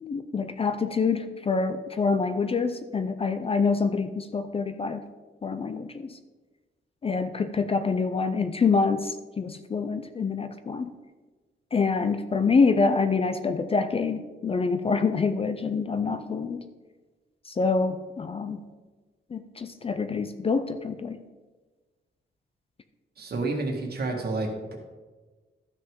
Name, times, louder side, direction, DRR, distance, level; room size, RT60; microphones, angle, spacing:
voice 1, 0.0-5.0 5.4-6.2 7.0-10.9 11.7-16.6 17.5-18.6 19.3-21.2, left 4 dB, 30° left, 10 dB, 0.4 m, -26 dB
voice 2, 23.2-24.8, right 3 dB, 55° right, 1 dB, 1.6 m, -30 dB
12.5 x 6.1 x 3.7 m, 1.3 s
wide cardioid pair, 160°, 20 cm